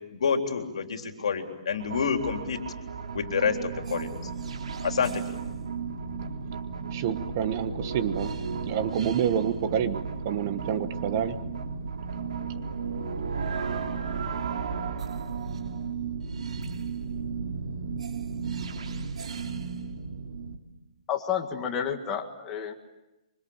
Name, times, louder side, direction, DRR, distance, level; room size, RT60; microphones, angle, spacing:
voice 1, 0.1-2.6 3.1-4.2 4.8-5.2, left 6 dB, 65° left, 3.7 m, -28 dB
sound 1, 1.7-20.6, right 5 dB, 70° right, 3.3 m, -34 dB
voice 2, 6.9-8.3 8.7-11.4, right 9 dB, 30° right, 1.2 m, -28 dB
voice 3, 21.1-22.7, left 8 dB, 15° left, 1.8 m, -30 dB
26.0 x 24.5 x 8.8 m
hypercardioid pair, 175°, 4 cm